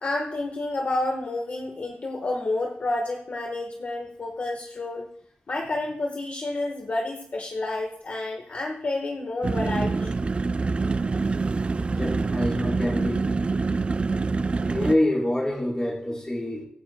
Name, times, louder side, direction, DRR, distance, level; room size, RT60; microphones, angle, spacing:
voice 1, 0.0-5.1 5.5-10.2, left 2 dB, 45° left, 1 dB, 1.3 m, -30 dB
sound 1, 9.4-15.0, right 4 dB, 30° right, 0.3 m, -26 dB
voice 2, 11.9-13.3 14.7-16.6, left 1 dB, 20° left, -3 dB, 4.0 m, -26 dB
23.5 x 9.8 x 2.2 m, 0.71 s
wide cardioid pair, 140°, 4 cm